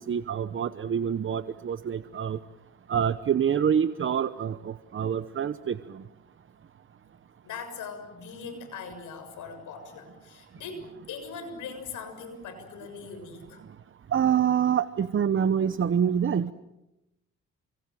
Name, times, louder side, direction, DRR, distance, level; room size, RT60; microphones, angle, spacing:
voice 1, 0.0-2.4 2.9-6.0 14.1-16.5, right 8 dB, 40° right, 12 dB, 1.0 m, -26 dB
voice 2, 7.4-13.6, left 5 dB, 85° left, 8 dB, 7.0 m, -41 dB
29.0 x 25.5 x 7.7 m, 0.95 s
cardioid pair, 90°, 30 cm